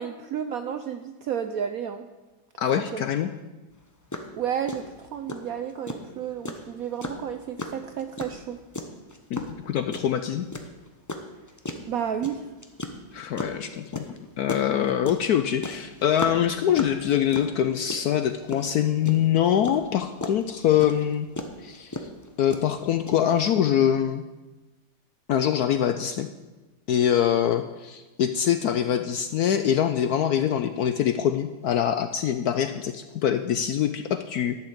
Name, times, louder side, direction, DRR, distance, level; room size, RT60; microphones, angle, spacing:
voice 1, 0.0-2.1 2.7-3.1 4.3-8.6 11.9-12.5, right 8 dB, 75° right, 8 dB, 0.8 m, -32 dB
voice 2, 2.6-3.3 9.3-10.5 13.1-14.0 14.4-21.3 21.6-22.0 22.4-24.2 25.3-26.3 26.9-34.6, left 9 dB, 70° left, 9 dB, 0.9 m, -24 dB
sound 1, 3.7-3.8 4.1-4.3 4.7-23.5, left 2 dB, 30° left, 0.3 m, -35 dB
11.5 x 5.9 x 8.5 m, 1.2 s
omnidirectional pair, 2.1 m